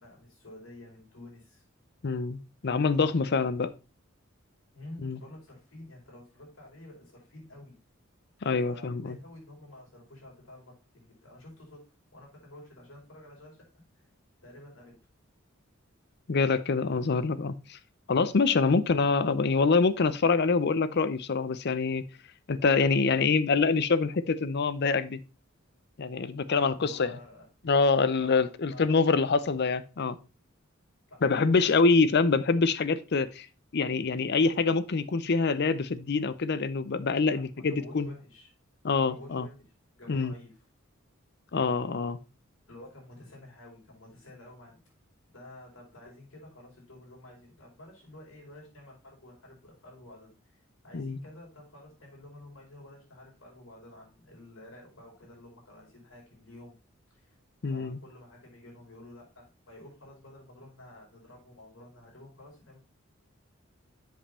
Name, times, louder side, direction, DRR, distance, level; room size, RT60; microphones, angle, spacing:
voice 1, 0.0-1.6 4.7-7.8 8.6-11.8 12.1-13.6 14.4-15.0 18.6-18.9 26.6-27.5 28.1-29.1 31.1-31.6 37.3-38.5 39.0-39.5 39.9-40.6 42.7-44.8 45.3-56.7 57.1-57.3 57.7-62.8, left 1 dB, 70° left, 5.1 m, -50 dB
voice 2, 2.0-2.4 2.6-3.7 5.0-5.2 8.4-9.2 16.3-17.8 18.1-22.1 22.5-25.2 26.0-27.1 27.7-30.2 31.2-33.5 33.7-38.1 38.8-39.5 40.1-40.3 41.5-42.2 50.9-51.2 57.6-58.0, left 4 dB, 55° left, 0.6 m, -25 dB
7.6 x 5.3 x 4.2 m
head